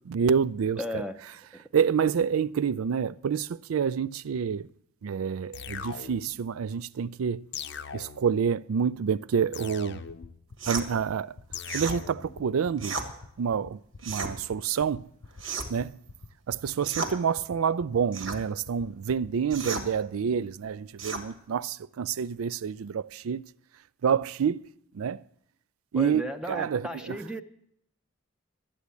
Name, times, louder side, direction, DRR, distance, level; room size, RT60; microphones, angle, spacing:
voice 1, 0.1-1.0 1.7-4.7 5.0-7.4 7.9-10.0 10.7-11.3 11.7-13.0 13.4-15.1 15.7-16.0 16.5-23.5 24.0-24.6 24.9-25.2 25.9-27.2, right 7 dB, 90° right, 0.4 m, -28 dB
voice 2, 0.8-1.1 1.5-1.6 25.9-27.4, equal, 5° right, 0.5 m, -35 dB
sound 1, 5.5-6.4 7.5-8.4 9.5-10.4 11.5-12.4, left 7 dB, 55° left, 0.6 m, -40 dB
sound 2, 10.1-20.0, left 3 dB, 85° left, 0.8 m, -46 dB
sound 3, 10.6-10.9 11.7-12.0 12.8-13.1 14.0-14.3 15.4-15.8 16.8-17.2 18.1-18.4 19.5-19.9 21.0-21.3, right 4 dB, 70° right, 1.6 m, -33 dB
13.0 x 8.4 x 8.2 m
head